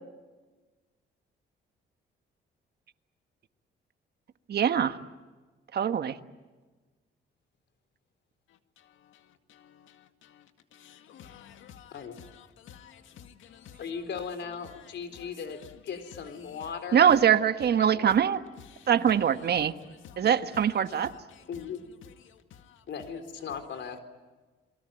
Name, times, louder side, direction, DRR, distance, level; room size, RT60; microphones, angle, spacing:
voice 1, 4.5-5.0 5.7-6.2 16.9-18.4 18.9-19.7 20.2-21.1, right 8 dB, 55° right, 1.5 m, -23 dB
voice 2, 8.5-14.0 14.6-17.0 18.6-21.7 22.0-22.8, left 9 dB, 80° left, 2.0 m, -53 dB
voice 3, 13.8-17.1 17.8-18.1 20.2-20.3 21.5-21.8 22.9-24.0, left 6 dB, 65° left, 4.0 m, -38 dB
28.5 x 22.5 x 9.2 m
cardioid pair, 90°, 20 cm